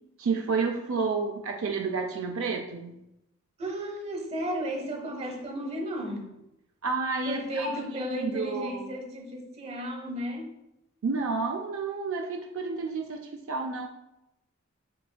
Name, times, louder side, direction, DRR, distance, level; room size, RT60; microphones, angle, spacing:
voice 1, 0.2-3.0 6.8-8.9 11.0-13.9, right 4 dB, 70° right, 3 dB, 0.4 m, -30 dB
voice 2, 3.6-6.4 7.2-10.5, equal, 30° right, 2 dB, 0.8 m, -34 dB
7.0 x 3.3 x 2.2 m, 0.88 s
head